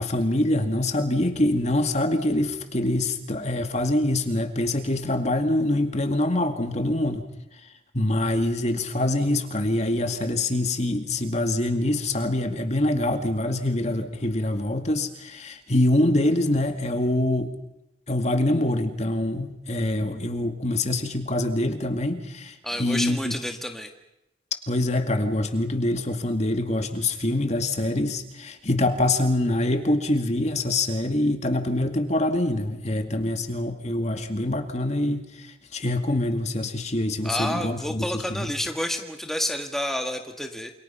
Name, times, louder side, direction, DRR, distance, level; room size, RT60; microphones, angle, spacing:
voice 1, 0.0-7.2 7.9-17.5 18.1-23.3 24.7-38.5, left 1 dB, 40° left, 6 dB, 2.3 m, -25 dB
voice 2, 22.6-23.9 37.2-40.7, equal, ahead, 4 dB, 1.6 m, -29 dB
28.5 x 28.0 x 5.8 m, 0.90 s
head